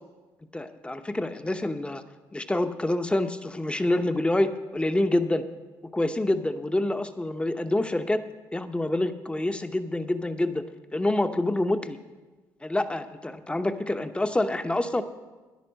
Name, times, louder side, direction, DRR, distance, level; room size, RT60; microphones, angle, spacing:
voice 1, 0.5-2.0 2.3-5.4 5.9-8.2 8.5-10.6 10.9-12.0 12.6-15.0, left 1 dB, 15° left, 9 dB, 0.9 m, -27 dB
10.5 x 9.3 x 6.4 m, 1.3 s
supercardioid pair, 70°, 9 cm